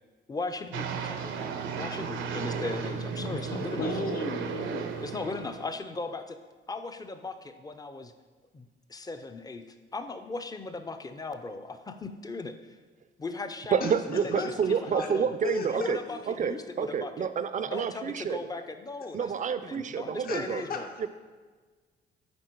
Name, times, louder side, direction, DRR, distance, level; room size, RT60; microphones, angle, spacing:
voice 1, 0.3-3.9 5.0-6.4 6.7-8.1 8.5-9.7 9.9-12.6 13.2-15.3 15.6-17.3 17.6-20.9, left 3 dB, 20° left, 8 dB, 0.5 m, -38 dB
sound 1, 0.7-5.8, right 6 dB, 75° right, 0.7 m, -34 dB
voice 2, 3.2-4.9 13.8-15.1 15.4-16.2 20.2-20.9, left 3 dB, 50° left, 4 dB, 0.9 m, -35 dB
voice 3, 13.7-16.0 16.3-18.4 19.1-20.6 21.0-21.1, right 7 dB, 40° right, 12 dB, 0.5 m, -29 dB
9.6 x 3.7 x 4.5 m, 1.4 s
cardioid pair, 90°, 20 cm